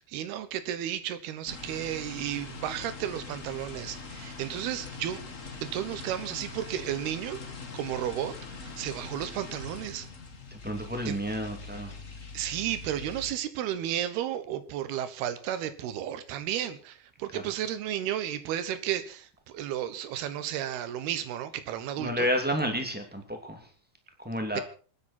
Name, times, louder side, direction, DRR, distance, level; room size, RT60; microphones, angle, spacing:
voice 1, 0.0-5.3 5.6-8.4 8.6-10.1 11.1-11.2 12.3-22.3 24.5-24.6, right 11 dB, 80° right, 3.1 m, -33 dB
sound 1, 1.5-13.3, left 4 dB, 55° left, 0.8 m, -43 dB
voice 2, 10.5-12.0 17.3-17.4 22.0-23.6 24.2-24.6, equal, 5° right, 1.7 m, -31 dB
26.0 x 10.0 x 4.3 m
omnidirectional pair, 4.5 m